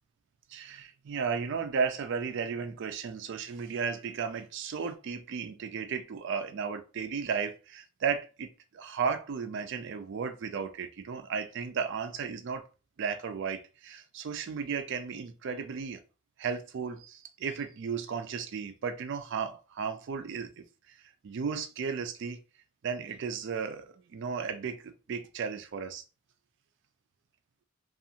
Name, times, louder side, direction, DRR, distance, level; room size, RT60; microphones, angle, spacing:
voice 1, 0.5-12.7 13.0-16.0 16.4-20.5 20.9-21.0 21.2-22.4 22.8-26.0, right 6 dB, 60° right, 0.4 m, -34 dB
2.5 x 2.4 x 2.8 m
head